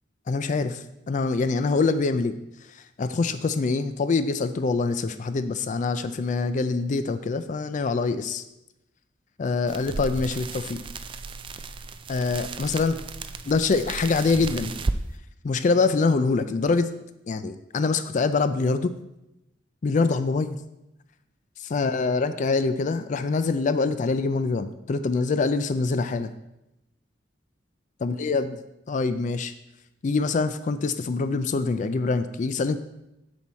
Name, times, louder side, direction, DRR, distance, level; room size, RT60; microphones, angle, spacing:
voice 1, 0.3-2.3 3.0-8.4 9.4-10.8 12.1-13.0 13.5-14.7 15.4-16.9 17.3-18.9 19.8-20.6 21.7-26.3 28.0-28.6 28.9-29.5 30.0-32.8, left 4 dB, 40° left, 11 dB, 0.4 m, -24 dB
sound 1, 9.7-15.0, right 3 dB, 30° right, 0.3 m, -34 dB
7.0 x 6.2 x 4.3 m, 0.90 s
head